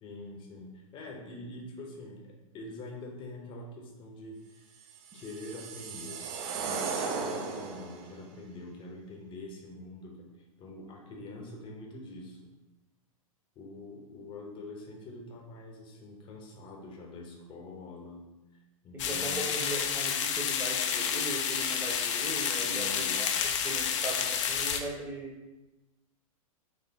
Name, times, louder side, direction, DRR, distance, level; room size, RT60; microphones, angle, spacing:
voice 1, 0.0-4.9 5.1-10.3 10.6-12.5 13.6-18.3 18.8-19.6 22.6-23.5, left 2 dB, 30° left, 0 dB, 0.8 m, -45 dB
sound 1, 4.9-8.1, right 5 dB, 35° right, 0.5 m, -36 dB
voice 2, 18.9-25.3, right 2 dB, 10° right, -2 dB, 0.8 m, -39 dB
sound 2, 19.0-24.8, left 7 dB, 55° left, 0.4 m, -30 dB
4.2 x 3.0 x 2.8 m, 1.0 s
hypercardioid pair, 105°, 18 cm